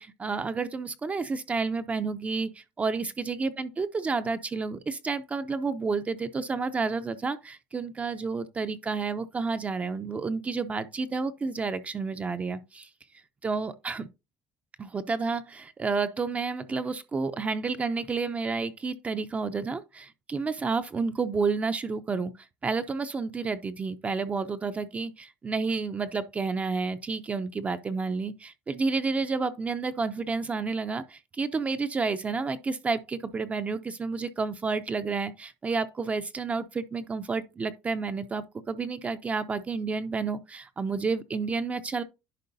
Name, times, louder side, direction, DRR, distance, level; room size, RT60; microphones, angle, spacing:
voice 1, 0.0-12.9 13.4-14.1 14.8-42.0, right 4 dB, 20° right, 0.4 m, -30 dB
10.5 x 4.5 x 2.6 m
cardioid pair, 150°, 7 cm